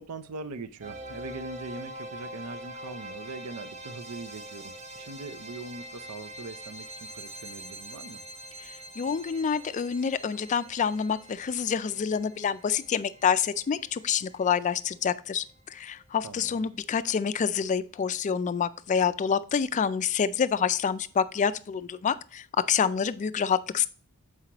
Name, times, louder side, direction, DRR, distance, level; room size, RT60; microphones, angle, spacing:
voice 1, 0.0-8.2 16.2-16.7, right 3 dB, 85° right, 0.6 m, -41 dB
sound 1, 0.8-15.8, right 1 dB, 30° right, 0.8 m, -44 dB
voice 2, 8.6-23.9, left 7 dB, 35° left, 0.3 m, -27 dB
7.4 x 4.8 x 2.9 m
head